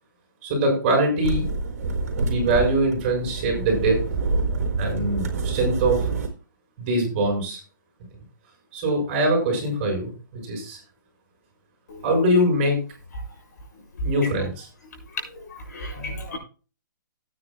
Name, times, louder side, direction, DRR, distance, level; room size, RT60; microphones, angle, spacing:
voice 1, 0.4-1.4 2.2-4.0 4.8-6.1 6.8-7.6 8.7-10.8 12.0-12.8 14.0-14.7, right 1 dB, 25° right, 6.8 m, -23 dB
sound 1, 1.2-6.3, right 4 dB, 45° right, 4.2 m, -27 dB
voice 2, 15.5-16.4, left 1 dB, 55° left, 6.7 m, -35 dB
18.0 x 9.7 x 2.4 m
hypercardioid pair, 170°, 11 cm